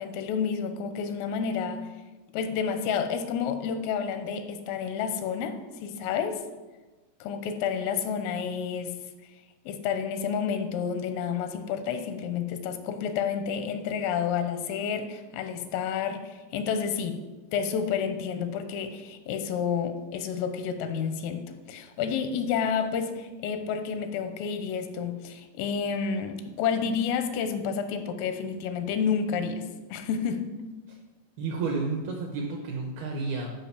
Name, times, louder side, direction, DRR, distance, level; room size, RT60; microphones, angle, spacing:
voice 1, 0.0-1.8 2.3-6.4 7.2-8.9 9.7-17.2 17.5-29.6 29.9-30.6, left 7 dB, 90° left, 8 dB, 3.4 m, -30 dB
voice 2, 31.4-33.5, right 4 dB, 75° right, 1 dB, 2.3 m, -31 dB
12.5 x 5.1 x 6.8 m, 1.2 s
omnidirectional pair, 5.8 m